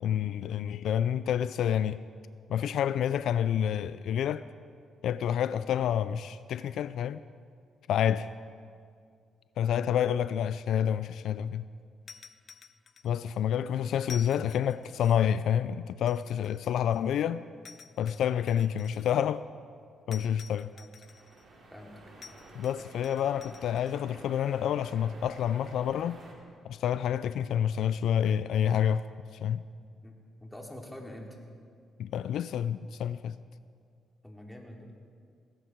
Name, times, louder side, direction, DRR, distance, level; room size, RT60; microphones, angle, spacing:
voice 1, 0.0-2.0 2.5-4.4 5.0-7.2 7.9-8.3 9.6-11.6 13.0-17.4 18.0-19.4 20.1-20.7 22.6-26.2 26.6-29.1 29.4-29.6 32.0-33.3, left 9 dB, 75° left, 0.4 m, -28 dB
sound 1, 12.1-13.4 14.0-15.4 16.1-17.2 17.6-19.2 20.1-21.5 22.2-24.0, left 6 dB, 50° left, 0.7 m, -51 dB
sound 2, 21.0-26.3, right 2 dB, 55° right, 3.9 m, -51 dB
voice 2, 30.0-31.4 34.2-35.1, left 1 dB, 5° left, 3.0 m, -46 dB
19.0 x 16.5 x 4.6 m
cardioid pair, 90°, 0 cm